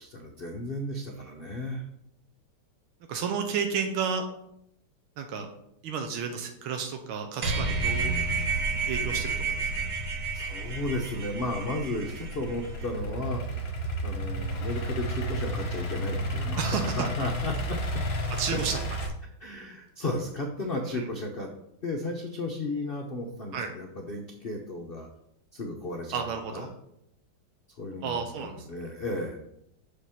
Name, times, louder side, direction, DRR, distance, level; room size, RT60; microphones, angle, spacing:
voice 1, 0.0-1.8 10.3-13.4 14.0-17.8 19.4-21.5 21.8-25.1 25.5-26.7 27.8-29.4, left 2 dB, 60° left, 1 dB, 0.5 m, -34 dB
voice 2, 3.1-4.2 5.2-5.5 5.8-8.1 8.9-9.7 16.6-17.1 18.4-18.8 20.9-21.0 23.5-23.7 26.1-26.7 28.0-28.6, right 6 dB, 85° right, 5 dB, 1.6 m, -31 dB
sound 1, 7.4-13.0, right 4 dB, 50° right, 1.4 m, -30 dB
Idling / Accelerating revving vroom, 12.0-19.1, right 1 dB, 40° left, 1.0 m, -32 dB
6.6 x 5.2 x 5.7 m, 0.78 s
omnidirectional pair, 2.3 m